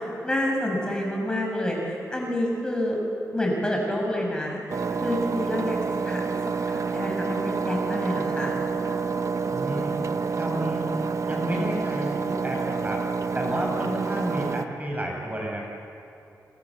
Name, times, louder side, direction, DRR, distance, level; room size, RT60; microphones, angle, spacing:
voice 1, 0.0-3.0 3.3-4.6 5.0-5.8 6.0-8.6, left 1 dB, 15° left, -1 dB, 6.2 m, -28 dB
Engine, 4.7-14.6, right 5 dB, 55° right, 1.0 m, -28 dB
voice 2, 9.5-9.9 10.4-13.0 13.3-15.7, right 1 dB, 25° right, 0 dB, 5.9 m, -31 dB
29.5 x 26.5 x 7.5 m, 2.7 s
wide cardioid pair, 110°, 6 cm